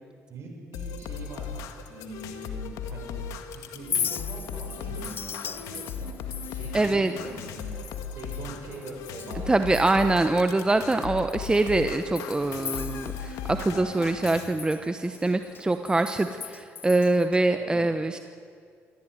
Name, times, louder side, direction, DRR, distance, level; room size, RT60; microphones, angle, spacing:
voice 1, 0.3-1.5 1.9-3.1 3.5-6.2 6.5-7.7 8.0-9.6 17.5-17.8, right 2 dB, 60° right, 1 dB, 6.8 m, -42 dB
sound 1, 0.7-14.4, left 6 dB, 90° left, 1.8 m, -37 dB
Chink clink, 3.7-9.4 9.7-10.3 10.7-10.8 11.3-13.7 13.9-17.4, left 7 dB, 40° left, 0.6 m, -38 dB
voice 2, 6.7-7.1 9.5-18.2, right 2 dB, 15° right, 8 dB, 1.0 m, -24 dB
sound 2, 6.8-16.5, equal, 5° left, 7.2 m, -54 dB
24.5 x 15.5 x 9.5 m, 2.2 s
cardioid pair, 90°, 5 cm